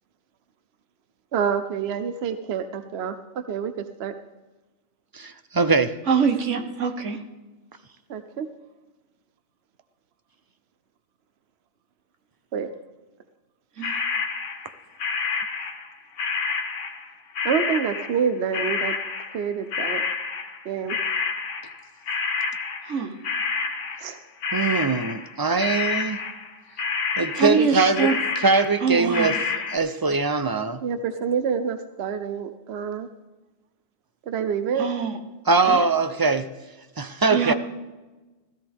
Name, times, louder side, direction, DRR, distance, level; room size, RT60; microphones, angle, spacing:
voice 1, 1.3-4.1 8.1-8.5 12.5-12.7 17.4-19.0 19.3-20.0 20.6-21.0 24.0-24.2 27.6-27.7 30.8-33.1 34.3-34.9 35.7-35.8, right 7 dB, 65° right, 9 dB, 0.9 m, -27 dB
voice 2, 5.1-6.0 24.5-26.2 27.2-30.8 35.5-36.5 37.0-37.5, right 3 dB, 30° right, 10 dB, 0.4 m, -22 dB
voice 3, 6.1-7.2 13.8-14.0 22.9-23.1 27.4-28.2 28.8-29.3 34.8-35.1 35.7-35.8 37.3-37.5, right 6 dB, 80° right, 6 dB, 1.5 m, -23 dB
sound 1, 13.8-15.9 16.2-23.0 23.2-26.5 26.8-27.7 28.0-29.8, left 5 dB, 90° left, 1.4 m, -28 dB
16.5 x 13.5 x 3.5 m, 1.1 s
omnidirectional pair, 1.2 m